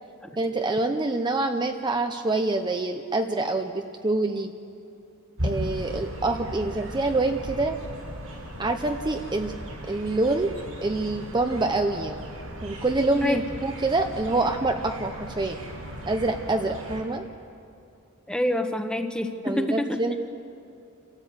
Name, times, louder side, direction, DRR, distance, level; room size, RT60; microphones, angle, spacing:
voice 1, 0.4-4.5 5.4-7.8 8.6-9.5 9.9-10.5 10.8-12.2 12.6-15.6 16.1-17.3 19.4-20.2, right 2 dB, 20° right, 5 dB, 0.7 m, -26 dB
sound 1, 5.4-17.0, equal, 85° right, 6.0 m, -37 dB
voice 2, 18.3-20.0, left 1 dB, 5° left, 6 dB, 1.1 m, -26 dB
29.5 x 13.0 x 8.1 m, 2.7 s
head